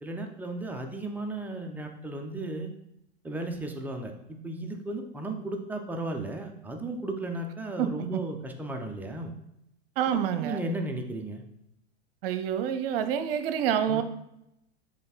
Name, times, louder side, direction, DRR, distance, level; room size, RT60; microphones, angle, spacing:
voice 1, 0.0-2.7 3.2-9.3 10.4-11.4 13.9-14.0, right 2 dB, 5° right, 3 dB, 0.3 m, -35 dB
voice 2, 7.8-8.2 10.0-10.6 12.2-14.0, right 9 dB, 55° right, 10 dB, 0.7 m, -27 dB
6.8 x 3.6 x 4.0 m, 0.83 s
hypercardioid pair, 125°, 34 cm